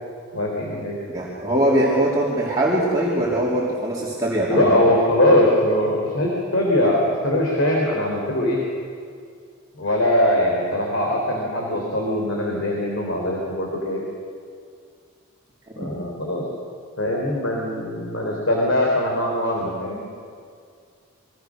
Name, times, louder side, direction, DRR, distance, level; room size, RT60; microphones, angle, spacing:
voice 1, 0.3-1.0 4.4-8.6 9.8-14.0 15.8-16.4 17.0-20.0, left 1 dB, 60° left, -1 dB, 4.0 m, -21 dB
voice 2, 1.1-4.8 15.7-15.9, right 1 dB, 15° right, -6 dB, 3.2 m, -22 dB
28.5 x 23.0 x 6.5 m, 2.2 s
head